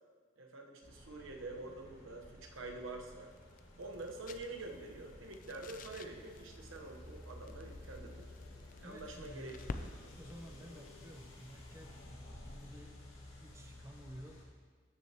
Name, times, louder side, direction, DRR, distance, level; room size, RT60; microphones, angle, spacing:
voice 1, 0.4-3.3 3.8-8.3 8.8-9.6, right 2 dB, 85° right, 2 dB, 1.0 m, -47 dB
sound 1, 0.8-14.4, left 1 dB, 85° left, 1.9 m, -53 dB
sound 2, 2.3-13.0, left 3 dB, 40° left, 0.4 m, -53 dB
voice 2, 8.8-9.7 10.1-12.9 13.4-14.4, equal, 15° right, 3 dB, 0.7 m, -52 dB
14.0 x 6.4 x 2.9 m, 1.5 s
head